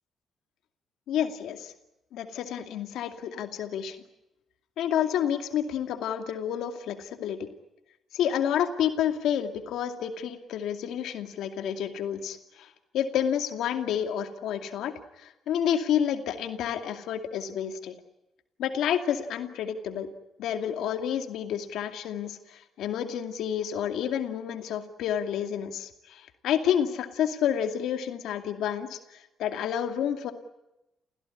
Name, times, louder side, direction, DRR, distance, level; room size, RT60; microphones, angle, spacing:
voice 1, 1.1-1.7 2.1-4.0 4.8-7.5 8.1-12.7 12.9-14.9 15.2-17.9 18.6-20.1 20.4-30.3, left 9 dB, 80° left, 6 dB, 2.4 m, -29 dB
29.5 x 16.5 x 9.9 m, 0.92 s
cardioid pair, 90°, 0 cm